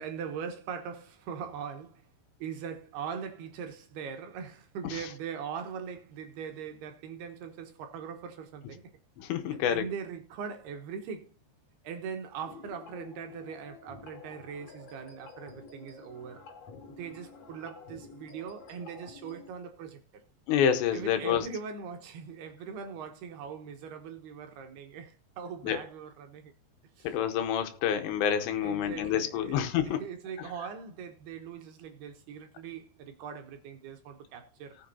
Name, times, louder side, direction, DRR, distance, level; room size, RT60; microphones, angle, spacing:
voice 1, 0.0-2.1 2.4-8.9 9.5-11.3 11.8-16.5 17.0-20.0 20.9-26.5 27.0-27.2 28.6-34.8, right 7 dB, 70° right, 2.7 m, -41 dB
voice 2, 9.2-9.8 20.5-21.5 25.6-25.8 27.0-30.0, left 9 dB, 80° left, 3.2 m, -28 dB
sound 1, 12.4-19.5, left 4 dB, 45° left, 2.5 m, -50 dB
18.5 x 6.9 x 2.7 m
omnidirectional pair, 5.4 m